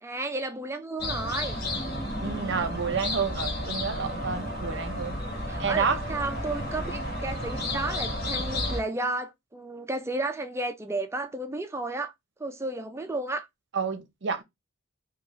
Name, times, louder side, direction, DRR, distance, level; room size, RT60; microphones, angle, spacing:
voice 1, 0.0-1.6 5.1-12.1 12.4-13.5, right 2 dB, 10° right, 0.4 m, -33 dB
sound 1, 1.0-8.8, left 1 dB, 40° left, 1.5 m, -32 dB
voice 2, 2.2-5.2 5.6-6.0 13.7-14.4, right 5 dB, 55° right, 0.6 m, -29 dB
3.4 x 2.4 x 3.6 m
head